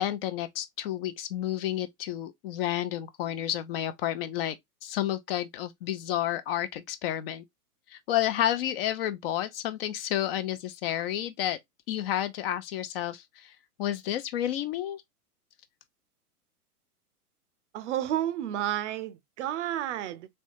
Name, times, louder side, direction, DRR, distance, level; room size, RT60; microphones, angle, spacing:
voice 1, 0.0-4.6 4.8-7.4 7.9-11.6 11.9-13.5 13.8-15.0, left 12 dB, 40° left, 0.7 m, -30 dB
voice 2, 17.7-20.3, right 12 dB, 50° right, 0.6 m, -31 dB
3.5 x 3.3 x 2.6 m
hypercardioid pair, 115°, 45 cm